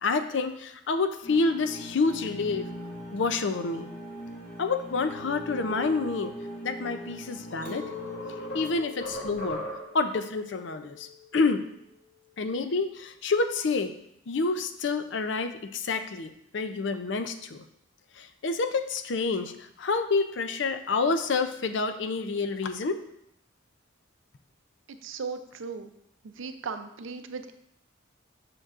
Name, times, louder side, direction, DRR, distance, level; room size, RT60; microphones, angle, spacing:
voice 1, 0.0-2.7 3.1-3.9 4.6-6.3 6.6-7.9 8.5-9.6 9.9-11.6 12.4-13.9 14.3-17.6 18.2-23.0, left 4 dB, 60° left, 9 dB, 0.5 m, -28 dB
sound 1, 1.2-8.7, equal, 45° left, 1.9 m, -41 dB
sound 2, 6.9-7.0 7.5-10.1, equal, 75° left, 2.6 m, -39 dB
Chink clink, 7.6-13.0, left 4 dB, 10° left, 1.3 m, -45 dB
voice 2, 25.0-25.9 26.2-27.5, right 5 dB, 75° right, 9 dB, 0.5 m, -37 dB
7.8 x 6.1 x 2.5 m, 0.77 s
head